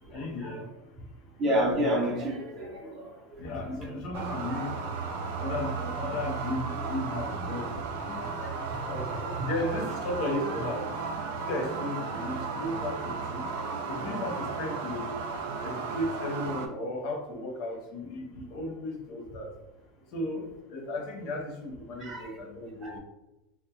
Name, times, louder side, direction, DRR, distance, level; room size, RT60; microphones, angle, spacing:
voice 1, 0.1-0.7 3.4-4.8 5.4-8.3 8.9-10.8 11.3-13.5 13.9-15.1 15.6-19.5 20.1-23.0, left 1 dB, 55° left, 2 dB, 0.5 m, -35 dB
voice 2, 1.4-3.1 8.4-9.5 22.0-22.4 22.8-23.0, equal, 35° right, 0 dB, 0.6 m, -30 dB
sound 1, 4.1-16.7, right 4 dB, 75° right, 0.4 m, -34 dB
2.2 x 2.1 x 2.7 m, 0.99 s
supercardioid pair, 125°, 0 cm